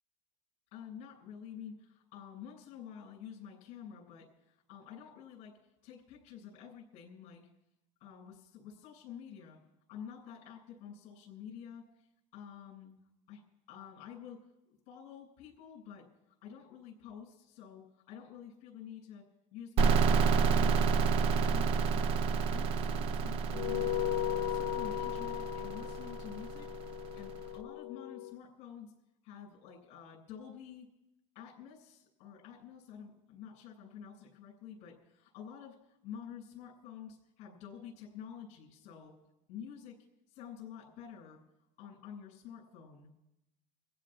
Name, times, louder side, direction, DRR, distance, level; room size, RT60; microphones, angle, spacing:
voice 1, 0.7-7.5 8.0-9.6 9.9-12.1 12.3-12.9 13.3-13.4 13.7-14.5 14.9-16.1 16.4-19.3 19.5-20.8 21.1-22.1 22.5-23.8 24.2-26.7 27.1-28.9 29.2-30.9 31.3-39.1 39.5-40.0 40.3-41.4 41.8-43.1, left 8 dB, 45° left, -6 dB, 7.9 m, -49 dB
sound 1, 19.8-27.3, right 5 dB, 35° right, 0.5 m, -30 dB
sound 2, 23.5-28.3, left 16 dB, 70° left, 1.0 m, -37 dB
26.5 x 16.0 x 2.6 m, 0.86 s
cardioid pair, 175°, 16 cm